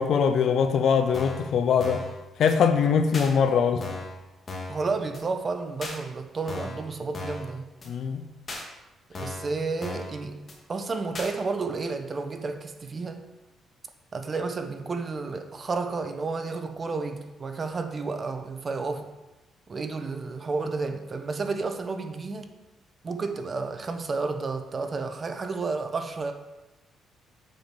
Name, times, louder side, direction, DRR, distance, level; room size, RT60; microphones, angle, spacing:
voice 1, 0.0-2.0 2.4-3.8 7.8-8.2, left 6 dB, 65° left, 9 dB, 0.8 m, -22 dB
sound 1, 1.1-1.5 1.8-2.1 2.5-2.6 3.1-3.3 3.8-4.1 4.5-4.8 5.1-5.2 5.8-6.0 6.5-6.8 7.1-7.5 7.8-7.9 8.5-8.6 9.1-9.5 9.8-10.1 10.5-10.6 11.1-11.3, left 2 dB, 40° left, 2.0 m, -36 dB
voice 2, 4.7-7.7 9.1-13.2 14.1-19.1 19.7-22.5 23.0-26.3, right 4 dB, 40° right, 7 dB, 1.0 m, -31 dB
7.7 x 5.2 x 6.0 m, 1.0 s
cardioid pair, 90°, 0 cm